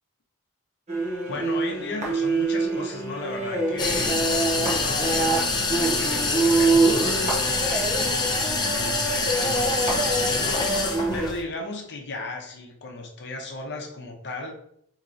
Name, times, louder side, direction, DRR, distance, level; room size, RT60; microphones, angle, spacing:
sound 1, 0.9-11.3, right 3 dB, 30° right, 0.9 m, -25 dB
voice 1, 1.3-4.2 4.6-14.5, left 2 dB, 50° left, 2 dB, 0.7 m, -36 dB
sound 2, 3.8-11.4, left 3 dB, 20° left, 0.4 m, -26 dB
4.5 x 2.9 x 2.6 m, 0.70 s
head